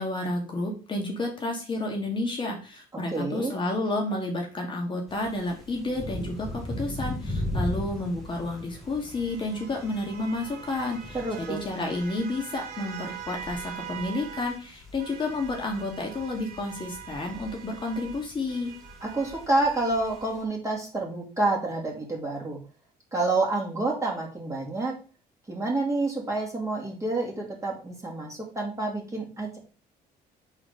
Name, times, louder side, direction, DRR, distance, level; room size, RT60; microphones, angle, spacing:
voice 1, 0.0-18.7, left 2 dB, 30° left, 0 dB, 1.6 m, -31 dB
voice 2, 2.9-3.5 11.1-11.6 19.0-22.6 23.1-25.0 25.5-29.6, right 2 dB, 20° right, -2 dB, 2.4 m, -28 dB
sound 1, 5.1-20.4, left 1 dB, ahead, 2.2 m, -39 dB
sound 2, 8.0-14.7 15.0-20.3, right 8 dB, 70° right, 2.1 m, -44 dB
4.9 x 4.1 x 5.2 m, 0.34 s
cardioid pair, 110°, 17 cm